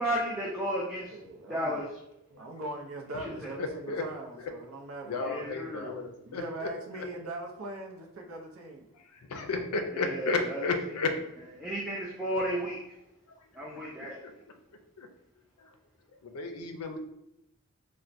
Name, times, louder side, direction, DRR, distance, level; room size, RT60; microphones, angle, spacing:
voice 1, 0.0-1.1 1.5-1.9 3.2-3.5 5.2-6.0 9.9-10.6 11.6-12.8 13.6-14.2, equal, ahead, -6 dB, 0.4 m, -33 dB
voice 2, 1.1-1.8 2.3-5.4 6.2-8.9, right 2 dB, 70° right, 1 dB, 0.5 m, -41 dB
voice 3, 3.6-4.0 5.1-6.7 8.9-11.1 11.8-12.0 14.0-14.1 15.0-15.1 15.6-15.7 16.2-17.0, left 3 dB, 85° left, 5 dB, 0.5 m, -33 dB
4.2 x 2.1 x 2.5 m, 0.82 s
head